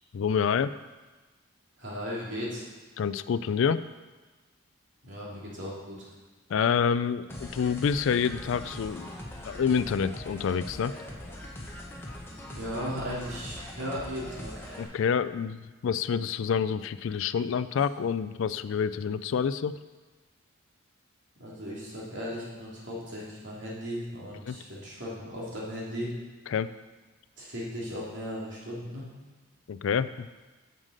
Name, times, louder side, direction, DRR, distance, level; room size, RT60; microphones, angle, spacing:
voice 1, 0.1-0.7 3.0-3.8 6.5-9.1 9.4-11.0 14.8-19.8 24.5-24.6 26.5-26.7 29.7-30.3, left 6 dB, 65° left, 14 dB, 0.3 m, -27 dB
voice 2, 1.8-2.7 5.0-6.1 12.5-15.0 21.4-26.1 27.4-29.1, equal, 55° right, -6 dB, 2.8 m, -37 dB
sound 1, 7.3-14.8, left 1 dB, 10° left, 1.1 m, -42 dB
7.3 x 6.7 x 6.5 m, 1.2 s
head